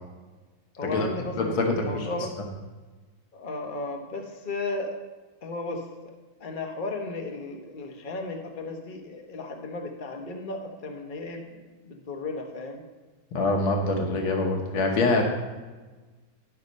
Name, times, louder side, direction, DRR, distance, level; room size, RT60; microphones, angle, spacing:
voice 1, 0.8-2.3 3.3-4.9 5.4-6.1 6.4-12.8, left 2 dB, 35° left, 3 dB, 0.9 m, -35 dB
voice 2, 1.4-2.1 13.3-15.2, left 2 dB, 75° left, 1 dB, 2.0 m, -24 dB
11.5 x 5.8 x 5.3 m, 1.3 s
omnidirectional pair, 2.2 m